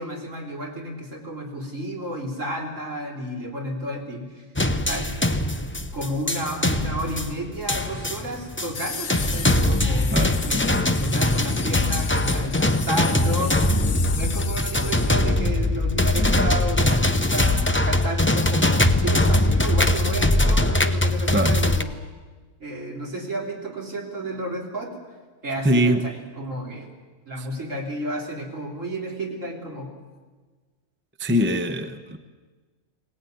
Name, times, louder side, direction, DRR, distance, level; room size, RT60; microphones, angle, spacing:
voice 1, 0.0-5.2 5.9-10.1 10.5-13.7 14.1-21.9 22.6-25.0 25.4-26.9 27.3-29.9, right 1 dB, 60° right, 0 dB, 3.9 m, -32 dB
sound 1, 4.6-21.8, left 1 dB, 15° left, 0.5 m, -22 dB
sound 2, 8.7-15.2, left 6 dB, 50° left, 1.1 m, -36 dB
voice 2, 21.3-21.6 25.6-26.0 27.4-27.5 31.2-32.2, equal, 10° right, 8 dB, 0.8 m, -22 dB
21.5 x 18.5 x 9.3 m, 1.4 s
omnidirectional pair, 1.5 m